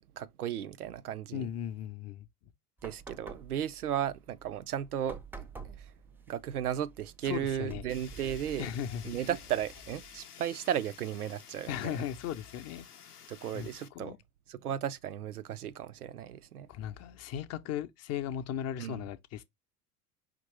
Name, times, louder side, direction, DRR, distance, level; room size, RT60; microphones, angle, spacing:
voice 1, 0.1-1.5 2.8-5.9 6.3-8.7 9.0-11.9 13.3-14.2 14.5-16.7 18.8-19.0, right 10 dB, 80° right, 0.5 m, -35 dB
voice 2, 1.3-2.3 7.2-7.9 8.6-9.0 11.7-13.2 13.5-13.7 13.9-14.2 16.7-19.4, left 10 dB, 35° left, 0.6 m, -37 dB
sound 1, 2.8-10.3, right 4 dB, 5° right, 0.5 m, -50 dB
Fire, 7.9-13.9, left 8 dB, 85° left, 0.7 m, -52 dB
5.2 x 2.9 x 3.2 m
figure-of-eight pair, 75°, 45 cm